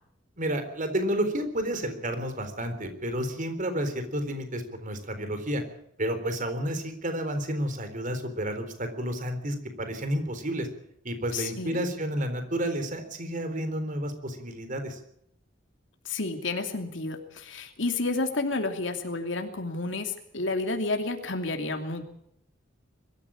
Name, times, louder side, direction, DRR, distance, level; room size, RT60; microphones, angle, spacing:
voice 1, 0.4-5.6 6.0-10.7 11.0-15.0, right 1 dB, 45° right, 9 dB, 3.9 m, -31 dB
voice 2, 11.3-11.9 16.0-22.0, left 3 dB, 75° left, 5 dB, 2.8 m, -30 dB
23.0 x 14.0 x 8.7 m, 0.75 s
head